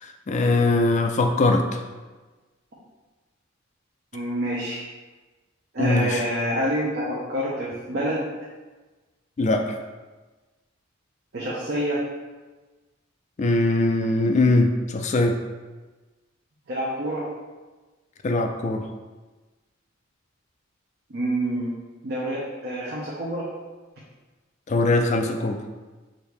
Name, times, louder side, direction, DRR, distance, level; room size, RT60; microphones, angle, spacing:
voice 1, 0.0-1.8 5.8-6.2 9.4-9.7 13.4-15.4 18.2-18.9 24.7-25.6, left 2 dB, 35° left, 4 dB, 0.3 m, -21 dB
voice 2, 4.1-4.8 5.7-8.2 11.3-12.0 16.7-17.3 21.1-21.7 22.0-23.5, right 1 dB, 55° right, -6 dB, 0.7 m, -27 dB
5.0 x 2.7 x 3.2 m, 1.2 s
head